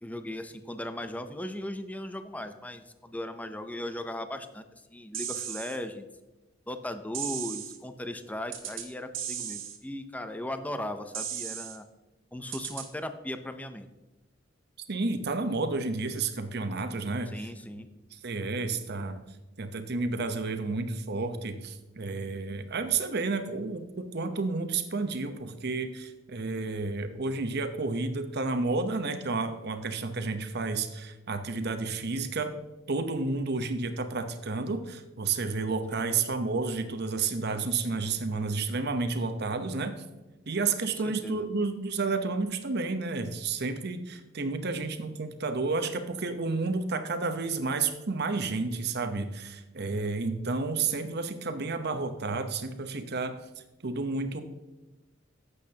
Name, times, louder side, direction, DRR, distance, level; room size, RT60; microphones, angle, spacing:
voice 1, 0.0-4.6 4.9-6.1 6.7-11.9 12.3-13.9 17.3-17.9 35.9-36.2 41.0-41.5, left 1 dB, 10° left, 9 dB, 0.6 m, -37 dB
sound 1, 5.1-5.8 7.1-7.8 8.5-8.9 9.1-9.8 11.1-11.8 12.5-12.9, right 9 dB, 75° right, 1.5 m, -36 dB
voice 2, 14.9-17.5 18.2-19.2 19.6-32.5 32.9-39.9 40.5-53.4 53.8-54.4, right 3 dB, 55° right, 8 dB, 0.9 m, -31 dB
12.0 x 8.2 x 2.9 m, 1.1 s
head